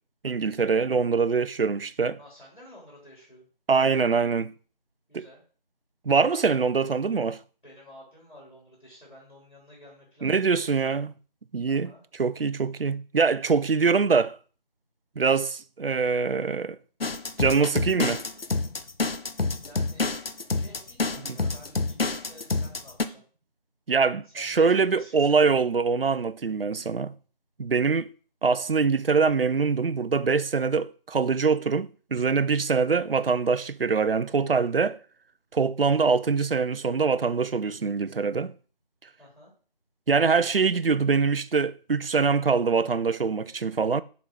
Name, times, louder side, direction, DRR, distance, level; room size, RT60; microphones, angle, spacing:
voice 1, 0.2-2.2 3.7-4.5 5.1-5.3 6.1-7.4 10.2-11.1 11.5-11.9 12.2-14.4 15.2-16.8 17.4-18.2 21.2-21.4 23.9-27.1 27.6-28.1 28.4-35.0 35.5-38.5 40.1-44.0, right 5 dB, 75° right, 0.5 m, -24 dB
voice 2, 2.2-3.5 5.1-5.4 7.6-10.9 11.7-12.0 19.6-20.2 20.6-23.2 24.3-25.4 39.2-39.5, left 1 dB, 55° left, 3.6 m, -51 dB
sound 1, 17.0-23.0, left 3 dB, 85° left, 0.7 m, -28 dB
7.1 x 4.0 x 4.7 m
figure-of-eight pair, 175°, 29 cm